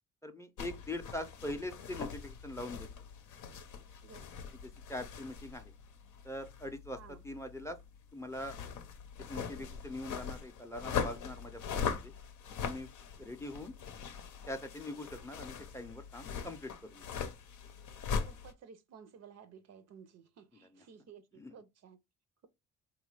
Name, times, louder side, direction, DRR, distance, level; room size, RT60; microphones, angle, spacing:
voice 1, 0.2-2.9 4.6-5.7 6.2-7.8 8.1-8.6 9.3-12.1 12.6-12.9 13.2-13.7 14.5-17.0 20.7-20.8 21.4-21.5, left 1 dB, 10° left, 0.5 m, -42 dB
sound 1, 0.6-18.5, left 6 dB, 85° left, 0.7 m, -41 dB
voice 2, 18.3-22.0, right 7 dB, 60° right, 0.5 m, -55 dB
3.4 x 2.3 x 3.1 m
cardioid pair, 90°, 30 cm